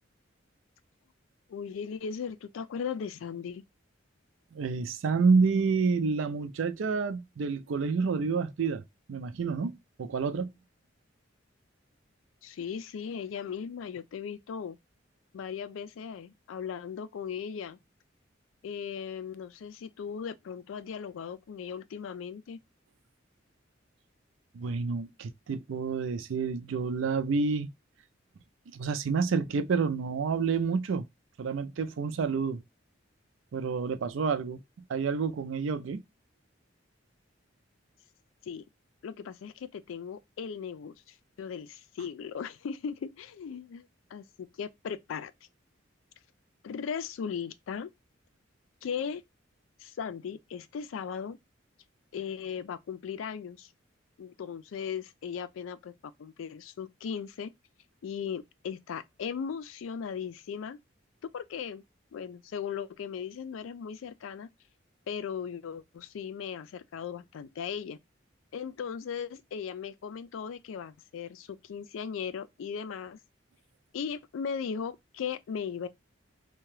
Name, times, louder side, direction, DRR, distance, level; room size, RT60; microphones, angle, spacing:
voice 1, 1.5-3.6 12.4-14.8 15.3-17.8 18.6-22.6 38.4-38.6 39.0-45.3 46.6-47.9 48.8-49.2 49.8-51.4 52.1-53.7 54.2-57.5 58.0-60.8 61.2-61.8 62.1-64.5 65.1-68.0 68.5-73.2 73.9-75.9, left 7 dB, 85° left, 0.3 m, -37 dB
voice 2, 4.5-8.8 9.1-9.7 10.0-10.5 24.5-27.7 28.7-31.0 31.4-32.6 33.5-34.6 34.9-36.0, right 5 dB, 80° right, 0.4 m, -28 dB
2.8 x 2.2 x 3.0 m
head